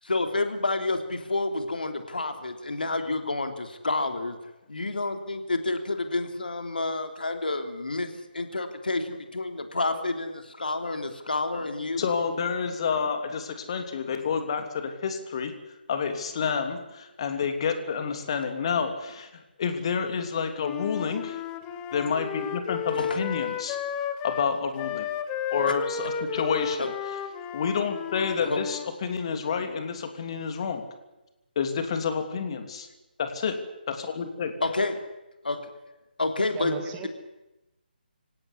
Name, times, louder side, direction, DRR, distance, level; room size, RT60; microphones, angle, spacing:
voice 1, 0.0-4.4 4.7-8.1 8.3-12.0 23.0-23.2 26.8-26.9 28.5-28.6 34.6-35.0 35.4-35.6 36.2-36.7, left 2 dB, 60° left, 6 dB, 3.3 m, -29 dB
voice 2, 12.0-15.5 15.9-19.3 19.6-21.4 21.9-23.8 24.2-25.1 25.5-27.2 27.5-30.8 31.5-32.9 33.2-33.6 33.9-34.5, left 6 dB, 35° left, 7 dB, 3.0 m, -29 dB
Wind instrument woodwind instrument, 20.5-28.9, left 7 dB, 15° left, 1.3 m, -33 dB
voice 3, 36.5-37.1, right 7 dB, 15° right, 4 dB, 2.2 m, -35 dB
25.0 x 17.5 x 10.0 m, 0.99 s
figure-of-eight pair, 145°, 5 cm